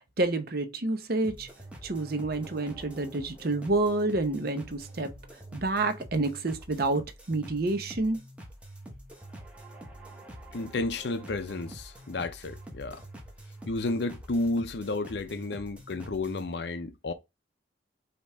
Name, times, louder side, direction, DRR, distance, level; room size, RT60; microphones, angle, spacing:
voice 1, 0.2-1.5 1.8-5.1 5.5-8.2, right 2 dB, 50° right, 0.8 m, -28 dB
sound 1, 1.2-16.5, right 1 dB, 5° right, 0.9 m, -46 dB
voice 2, 10.5-13.0 13.7-17.1, left 2 dB, 60° left, 0.6 m, -32 dB
5.2 x 2.9 x 3.4 m
head